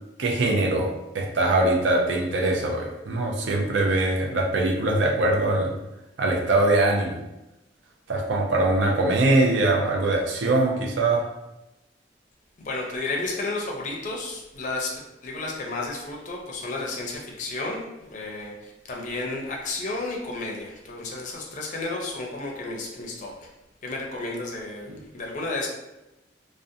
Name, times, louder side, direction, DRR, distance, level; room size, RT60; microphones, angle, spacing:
voice 1, 0.2-5.7 6.2-7.2 8.1-11.2 24.9-25.0, right 2 dB, 80° right, 0 dB, 0.5 m, -22 dB
voice 2, 12.6-23.5 23.8-24.9 25.1-25.7, left 2 dB, 40° left, -1 dB, 0.5 m, -32 dB
2.4 x 2.1 x 2.6 m, 0.96 s
head